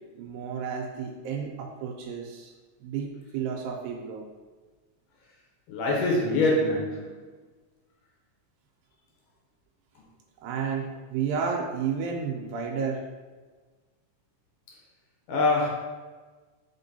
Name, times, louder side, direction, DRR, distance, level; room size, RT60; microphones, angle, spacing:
voice 1, 0.2-2.5 2.8-4.3 10.4-13.0, right 6 dB, 90° right, 0 dB, 2.3 m, -32 dB
voice 2, 5.7-7.2 15.3-15.7, left 2 dB, 75° left, -2 dB, 2.1 m, -24 dB
5.0 x 3.6 x 2.7 m, 1.3 s
omnidirectional pair, 4.0 m